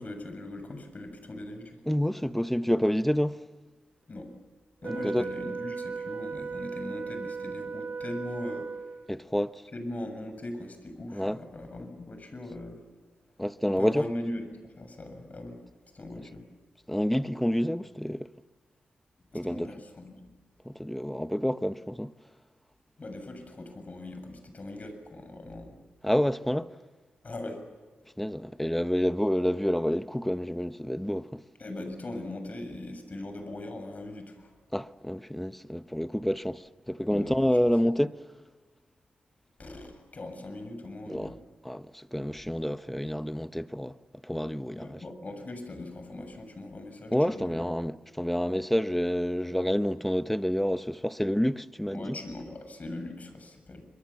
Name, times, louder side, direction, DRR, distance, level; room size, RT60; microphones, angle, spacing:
voice 1, 0.0-1.8 4.1-4.3 4.8-8.9 9.7-12.8 13.8-15.6 15.9-16.4 19.3-20.3 23.0-25.8 27.2-27.6 31.6-34.6 37.1-37.6 39.6-41.4 44.8-47.7 51.9-53.8, left 1 dB, 45° left, 7.3 m, -40 dB
voice 2, 1.9-3.4 4.9-5.2 9.1-9.6 11.1-11.4 13.4-14.1 16.9-18.3 19.3-19.7 20.6-22.1 26.0-26.7 28.2-31.4 34.7-38.2 41.1-41.3 41.6-44.0 44.2-45.0 47.1-52.2, equal, 5° left, 1.1 m, -28 dB
Wind instrument woodwind instrument, 4.8-9.2, right 5 dB, 50° right, 3.1 m, -37 dB
29.0 x 24.0 x 7.3 m
cardioid pair, 50°, 4 cm